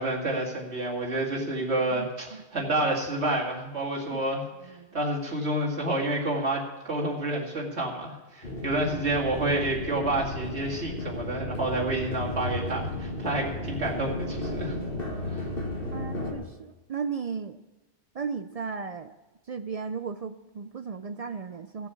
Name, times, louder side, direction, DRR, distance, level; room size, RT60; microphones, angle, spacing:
voice 1, 0.0-14.8 15.3-15.4, right 1 dB, 85° right, -2 dB, 2.8 m, -29 dB
sound 1, 8.4-16.3, left 1 dB, 60° left, 2.2 m, -34 dB
voice 2, 15.9-17.6 18.1-19.1 19.5-21.9, right 5 dB, 50° right, 10 dB, 0.4 m, -35 dB
16.0 x 7.1 x 7.0 m, 1.1 s
omnidirectional pair, 1.1 m